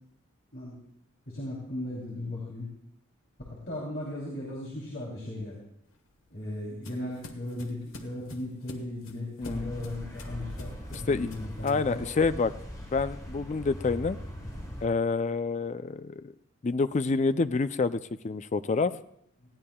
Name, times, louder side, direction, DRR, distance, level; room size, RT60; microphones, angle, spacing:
voice 1, 1.3-2.7 3.5-5.6 6.3-12.0, left 1 dB, 55° left, -5 dB, 3.0 m, -37 dB
sound 1, 5.9-11.9, left 2 dB, 80° left, 1.3 m, -47 dB
voice 2, 9.4-9.7 10.9-11.3 11.6-12.5 12.9-14.2 14.8-16.3 16.6-18.9, left 4 dB, 35° left, 13 dB, 0.4 m, -28 dB
sound 2, 9.4-14.9, equal, 20° left, 2.5 m, -40 dB
19.5 x 15.5 x 2.3 m, 0.73 s
head